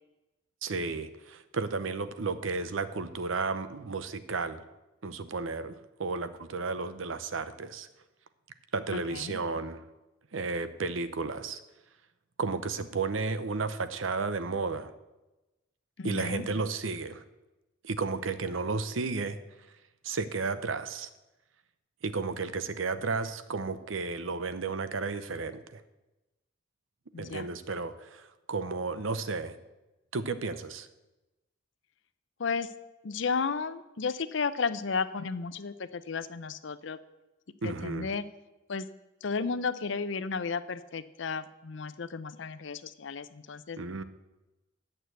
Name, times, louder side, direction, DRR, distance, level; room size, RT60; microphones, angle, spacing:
voice 1, 0.6-4.6 5.0-7.9 8.7-9.8 10.3-11.6 12.4-14.9 16.0-17.2 17.8-19.4 20.0-21.1 22.0-25.8 27.2-29.6 30.1-30.9 37.6-38.1 43.8-44.0, right 4 dB, 85° right, 12 dB, 0.8 m, -33 dB
voice 2, 8.9-9.4 16.0-16.4 27.1-27.5 32.4-32.7 33.0-37.0 37.6-38.2 38.7-38.9 39.2-43.8, left 5 dB, 65° left, 14 dB, 0.6 m, -33 dB
8.9 x 6.7 x 8.0 m, 1.0 s
head